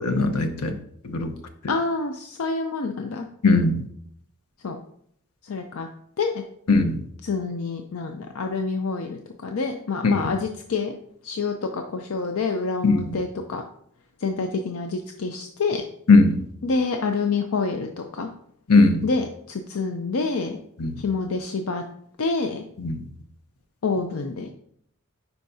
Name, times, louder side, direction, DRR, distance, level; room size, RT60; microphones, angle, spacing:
voice 1, 0.0-0.8 1.0-1.3 3.4-3.8 6.7-7.0 12.8-13.1 16.1-16.4 18.7-19.0 20.8-20.9 22.8-23.0, left 3 dB, 90° left, 7 dB, 0.9 m, -18 dB
voice 2, 1.7-3.3 4.6-4.8 5.4-5.9 6.2-6.3 7.2-10.9 11.2-13.6 14.2-15.8 16.6-18.3 19.0-20.6 21.0-21.8 22.2-22.6 23.8-24.5, left 4 dB, 70° left, 4 dB, 0.5 m, -27 dB
10.0 x 4.6 x 2.7 m, 0.68 s
head